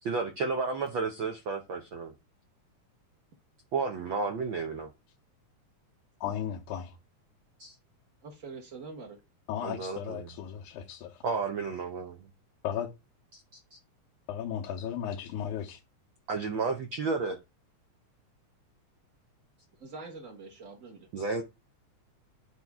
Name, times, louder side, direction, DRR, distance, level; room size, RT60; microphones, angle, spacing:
voice 1, 0.0-2.1 3.7-4.9 7.6-7.8 9.6-10.3 11.2-12.3 13.3-13.8 16.3-17.4 21.1-21.4, right 4 dB, 80° right, 1.1 m, -32 dB
voice 2, 6.2-7.0 9.5-11.2 12.6-12.9 14.3-15.8, left 9 dB, 90° left, 2.3 m, -35 dB
voice 3, 8.2-9.2 19.8-21.1, right 3 dB, 45° right, 1.0 m, -44 dB
10.5 x 4.5 x 3.6 m
omnidirectional pair, 3.4 m